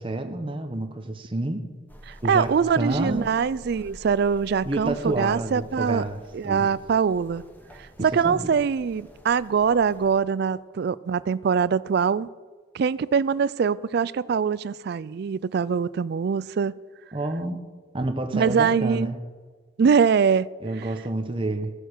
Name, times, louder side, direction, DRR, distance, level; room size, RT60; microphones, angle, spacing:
voice 1, 0.0-1.6 2.2-3.3 4.6-6.7 8.0-8.5 17.1-17.6 17.9-19.2 20.6-21.7, right 2 dB, 30° right, 0.9 m, -29 dB
sound 1, 1.9-10.1, equal, 10° left, 1.1 m, -48 dB
voice 2, 2.3-6.0 6.3-7.4 8.0-12.3 12.7-16.8 18.3-19.1 19.8-20.5, right 6 dB, 55° right, 0.3 m, -23 dB
14.5 x 6.6 x 6.6 m
head